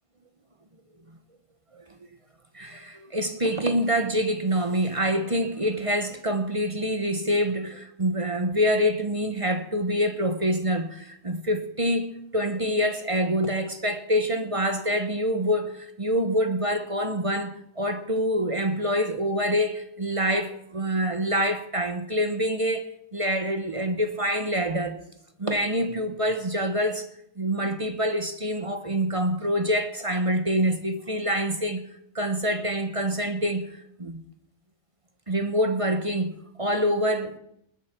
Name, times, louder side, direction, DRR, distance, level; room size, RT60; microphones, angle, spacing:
voice 1, 2.5-25.0 25.4-27.1 27.4-31.8 32.1-34.2 35.3-37.4, equal, 30° right, 1.0 m, -26 dB
20.0 x 7.8 x 6.0 m
omnidirectional pair, 1.2 m